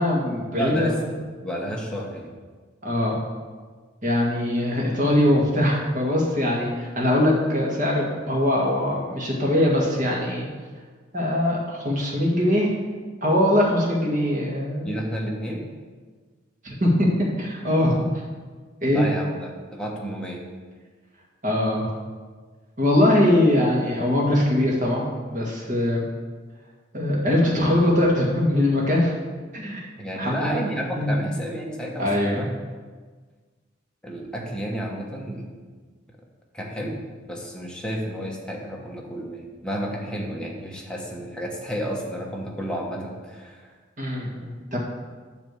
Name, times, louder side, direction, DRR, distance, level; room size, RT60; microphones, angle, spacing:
voice 1, 0.0-1.0 2.8-3.2 4.0-10.5 11.1-12.7 13.2-14.9 16.6-17.1 17.4-18.0 18.8-19.0 21.4-21.9 22.8-26.1 26.9-29.1 29.5-29.8 30.2-30.6 31.0-31.3 32.0-32.5 44.0-44.8, left 1 dB, 45° right, -2 dB, 1.8 m, -22 dB
voice 2, 0.5-2.3 14.8-15.7 18.9-20.5 30.0-32.5 34.0-35.5 36.5-43.7, equal, 5° left, -2 dB, 1.1 m, -31 dB
9.5 x 3.4 x 6.9 m, 1.5 s
head